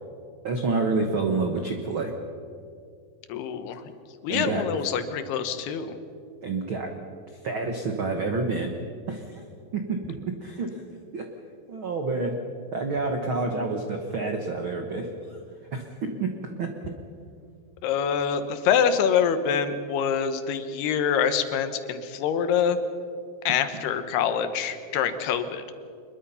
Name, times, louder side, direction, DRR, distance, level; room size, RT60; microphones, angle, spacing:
voice 1, 0.4-2.1 4.3-4.6 6.4-6.9 7.4-8.7 9.1-9.4 9.7-10.8 11.1-11.3 11.7-12.3 12.7-15.1 15.7-16.7, right 3 dB, 75° right, 4 dB, 1.2 m, -28 dB
voice 2, 3.3-3.8 4.2-6.0 17.8-22.8 23.4-25.6, left 7 dB, 85° left, 10 dB, 3.2 m, -25 dB
24.5 x 21.5 x 5.7 m, 2.4 s
omnidirectional pair, 4.5 m